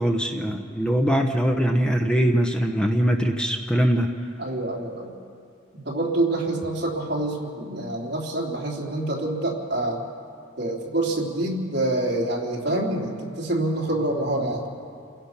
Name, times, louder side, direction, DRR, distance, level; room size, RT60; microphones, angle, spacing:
voice 1, 0.0-4.1, equal, 5° left, 3 dB, 0.8 m, -22 dB
voice 2, 4.4-5.1 5.7-10.0 10.6-14.6, right 1 dB, 55° right, -2 dB, 3.3 m, -26 dB
29.0 x 16.5 x 5.9 m, 2.4 s
head